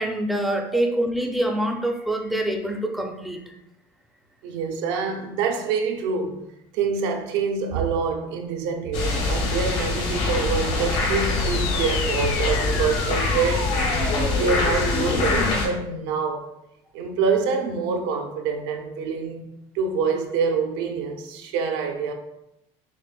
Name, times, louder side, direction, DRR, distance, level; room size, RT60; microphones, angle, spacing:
voice 1, 0.0-3.4, right 1 dB, ahead, 3 dB, 0.4 m, -25 dB
voice 2, 4.4-6.4 6.7-13.7 14.3-16.5 16.9-19.5 19.7-22.1, right 5 dB, 90° right, 4 dB, 0.6 m, -26 dB
sound 1, 8.9-15.7, left 3 dB, 70° left, 1.5 m, -24 dB
sound 2, 11.2-16.2, left 6 dB, 90° left, 0.4 m, -32 dB
5.9 x 2.4 x 2.2 m, 0.86 s
cardioid pair, 135°, 15 cm